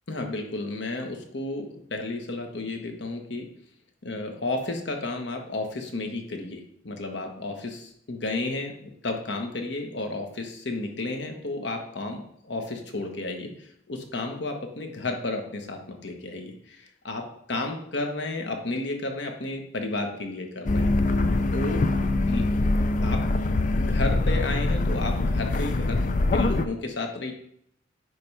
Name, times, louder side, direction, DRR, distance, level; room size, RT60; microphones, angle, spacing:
voice 1, 0.1-3.5 4.0-20.9 21.5-21.8 22.3-22.5 23.0-26.0 26.3-27.3, left 2 dB, 65° left, 3 dB, 1.2 m, -32 dB
sound 1, 20.7-26.7, left 2 dB, 40° left, 0.5 m, -24 dB
9.4 x 3.3 x 5.5 m, 0.70 s
head